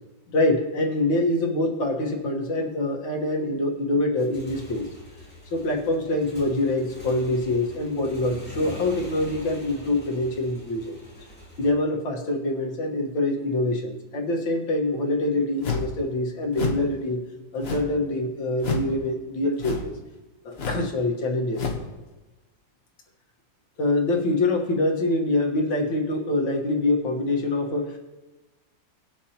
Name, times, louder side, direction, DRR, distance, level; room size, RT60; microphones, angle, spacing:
voice 1, 0.3-4.9 5.5-10.9 11.6-17.2 17.5-20.0 20.5-21.7 23.8-28.0, left 2 dB, 80° left, 1 dB, 2.2 m, -25 dB
Motorcycle / Engine, 4.2-11.7, left 1 dB, 5° left, 2.4 m, -44 dB
sound 1, 15.6-16.0 16.5-16.9 17.6-18.0 18.6-18.9 19.6-20.0 20.5-20.9 21.5-21.9, left 4 dB, 40° left, 1.0 m, -29 dB
19.0 x 7.1 x 2.9 m, 1.1 s
omnidirectional pair, 2.1 m